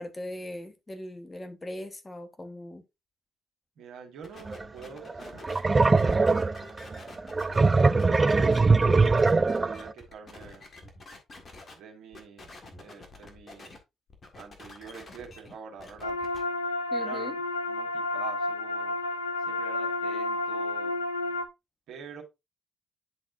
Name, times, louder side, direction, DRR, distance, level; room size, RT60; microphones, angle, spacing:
voice 1, 0.0-2.8 16.9-17.3, left 1 dB, 25° left, 1.3 m, -39 dB
voice 2, 3.8-5.5 5.9-6.3 6.7-7.2 7.5-10.6 11.8-12.5 12.8-13.8 14.4-16.2 17.0-17.4 17.7-19.0 19.5-21.0 21.9-22.2, right 6 dB, 65° right, 2.0 m, -46 dB
sound 1, 4.2-11.7 12.1-13.8 14.1-16.4, left 3 dB, 40° left, 1.8 m, -48 dB
sound 2, 4.5-4.6 5.1-9.9, right 3 dB, 30° right, 0.4 m, -22 dB
sound 3, 16.0-21.4, left 2 dB, 85° left, 0.5 m, -31 dB
10.5 x 4.2 x 2.6 m
figure-of-eight pair, 45°, 0 cm